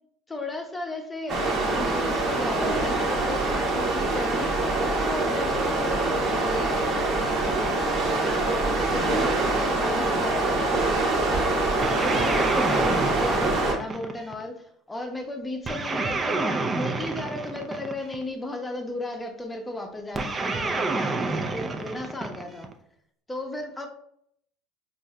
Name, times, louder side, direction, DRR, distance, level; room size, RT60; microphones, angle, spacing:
voice 1, 0.3-11.5 11.8-22.7 23.3-23.9, left 2 dB, 15° left, 3 dB, 0.8 m, -35 dB
sound 1, 1.3-13.7, right 2 dB, 50° right, 0.9 m, -24 dB
sound 2, 11.8-14.4 15.7-18.2 20.2-22.7, right 3 dB, 25° right, 0.5 m, -29 dB
4.5 x 2.6 x 2.2 m, 0.68 s
hypercardioid pair, 75°, 0 cm